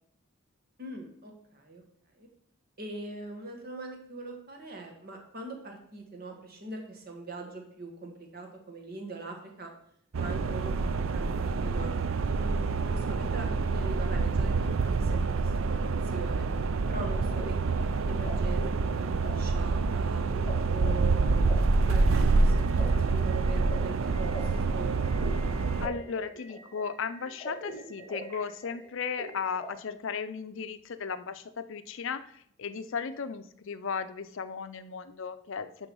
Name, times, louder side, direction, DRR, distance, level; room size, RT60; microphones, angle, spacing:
voice 1, 0.8-1.8 2.1-2.3 2.8-9.7 10.2-11.9 12.4-16.5 16.9-18.7 19.0-20.2 20.7-25.0, right 3 dB, 45° right, 3 dB, 1.6 m, -42 dB
sound 1, 10.1-25.9, right 3 dB, 65° right, 0.5 m, -27 dB
sound 2, 16.9-29.6, right 1 dB, 10° left, 3.1 m, -44 dB
voice 2, 25.8-35.7, left 6 dB, 60° left, 12 dB, 0.5 m, -36 dB
11.0 x 3.8 x 5.4 m, 0.69 s
head